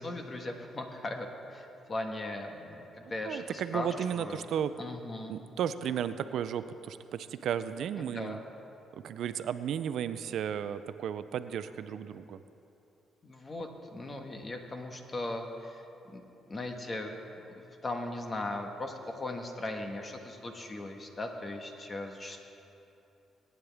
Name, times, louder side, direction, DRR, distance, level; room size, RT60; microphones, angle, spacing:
voice 1, 0.0-4.5 4.8-5.4 8.0-8.4 13.2-15.8 16.1-16.2 16.5-17.2 17.5-22.4, left 2 dB, 30° left, 4 dB, 1.4 m, -38 dB
voice 2, 3.0-4.7 5.3-8.4 8.9-12.4, right 9 dB, 70° right, 12 dB, 0.4 m, -34 dB
19.5 x 9.6 x 3.5 m, 2.9 s
cardioid pair, 90°, 0 cm